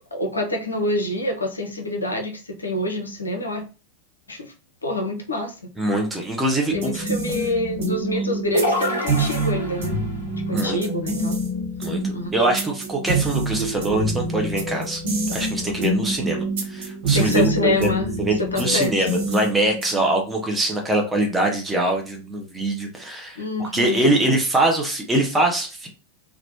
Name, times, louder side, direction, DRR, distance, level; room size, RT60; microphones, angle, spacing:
voice 1, 0.1-3.6 4.3-4.5 4.8-5.7 6.7-10.0 10.5-11.4 12.1-12.3 17.1-19.1 23.4-24.1, left 2 dB, 75° left, 3 dB, 0.5 m, -26 dB
voice 2, 5.8-7.0 8.1-8.2 10.5-11.0 11.8-15.0 15.3-17.9 18.2-25.9, right 2 dB, 10° right, 1 dB, 0.7 m, -23 dB
sound 1, 6.7-20.1, right 2 dB, 55° right, 1.0 m, -27 dB
sound 2, 8.5-10.1, left 1 dB, 80° right, 0.8 m, -25 dB
2.9 x 2.0 x 2.9 m, 0.33 s
figure-of-eight pair, 90°, 0 cm